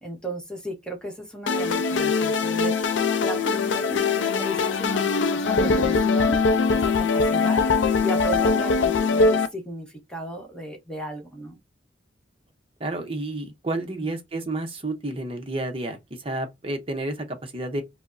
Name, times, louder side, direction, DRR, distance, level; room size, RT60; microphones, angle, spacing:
voice 1, 0.0-6.4 6.7-7.7 8.0-11.6 14.0-14.1, right 1 dB, 5° left, 1.0 m, -35 dB
sound 1, 1.5-9.5, left 4 dB, 90° left, 0.5 m, -22 dB
voice 2, 12.8-17.8, right 2 dB, 30° right, 0.7 m, -30 dB
4.7 x 2.0 x 2.6 m
head